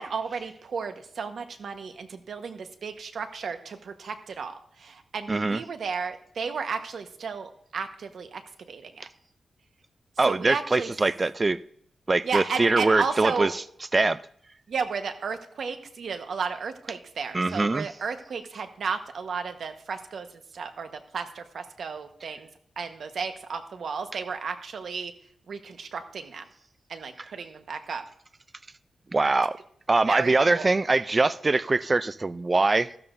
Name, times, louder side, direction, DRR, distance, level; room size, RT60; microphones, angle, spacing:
voice 1, 0.0-8.4 8.7-9.1 10.3-10.9 12.2-13.5 14.7-20.3 20.5-22.5 22.8-25.1 25.5-26.4 26.9-28.0 30.1-30.7, right 5 dB, 75° right, 1.2 m, -33 dB
voice 2, 5.3-5.6 10.2-11.6 12.1-13.6 13.9-14.2 17.3-17.9 29.1-29.6 29.9-32.9, right 3 dB, 30° right, 0.4 m, -23 dB
14.5 x 12.5 x 2.6 m
wide cardioid pair, 105°, 0 cm